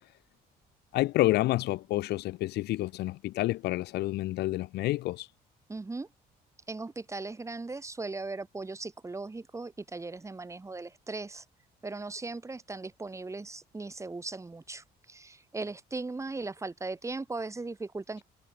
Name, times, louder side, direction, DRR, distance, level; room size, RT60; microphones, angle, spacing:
voice 1, 0.9-5.3, left 17 dB, 75° left, 0.9 m, -29 dB
voice 2, 5.7-6.1 6.7-11.5 11.8-18.2, right 3 dB, 15° right, 3.5 m, -38 dB
cardioid pair, 110°, 17 cm